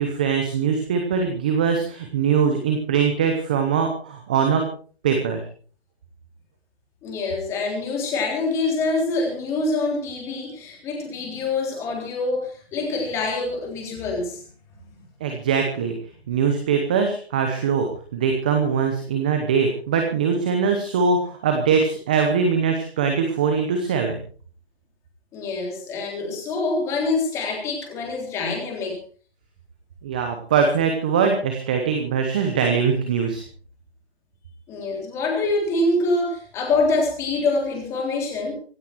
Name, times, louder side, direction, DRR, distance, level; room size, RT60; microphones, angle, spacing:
voice 1, 0.0-4.6 5.0-5.4 15.2-15.9 16.3-17.9 18.1-24.2 30.0-33.4, right 6 dB, 10° right, 5 dB, 0.8 m, -22 dB
voice 2, 7.0-14.4 25.3-29.0 34.7-38.5, left 3 dB, 10° left, 1 dB, 3.6 m, -25 dB
25.0 x 9.4 x 4.6 m, 0.43 s
figure-of-eight pair, 160°, 32 cm